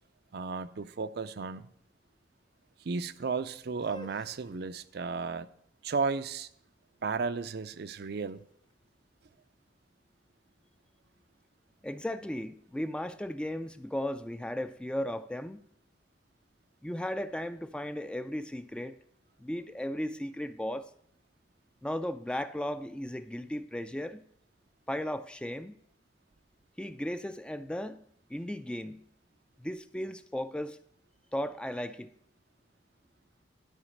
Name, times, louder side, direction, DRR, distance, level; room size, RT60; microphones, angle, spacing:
voice 1, 0.3-1.7 2.8-5.5 5.8-6.5 7.0-8.4, right 4 dB, 60° right, 0.5 m, -34 dB
sound 1, 3.7-9.6, equal, 25° left, 0.7 m, -55 dB
voice 2, 11.8-15.6 16.8-19.0 19.4-20.9 21.8-24.2 24.9-25.8 26.8-28.0 28.3-29.0 29.6-30.8 31.3-32.1, left 1 dB, 5° left, 0.3 m, -36 dB
12.0 x 5.0 x 6.4 m
head